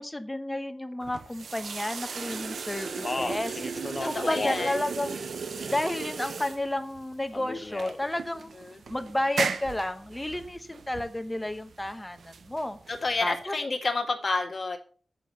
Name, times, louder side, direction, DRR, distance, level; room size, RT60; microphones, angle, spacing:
voice 1, 0.0-5.2 5.7-8.5 8.9-12.8 13.2-13.5, left 1 dB, 15° left, 9 dB, 1.1 m, -32 dB
sound 1, 1.0-13.4, right 5 dB, 70° right, 0.7 m, -36 dB
Speech, 2.8-4.7 5.0-5.9 7.3-8.0, left 2 dB, 30° left, 1.0 m, -34 dB
voice 2, 4.0-4.8 8.7-8.8 12.9-14.8, left 3 dB, 50° left, 3 dB, 1.8 m, -30 dB
7.5 x 6.7 x 6.4 m, 0.42 s
wide cardioid pair, 85°, 0 cm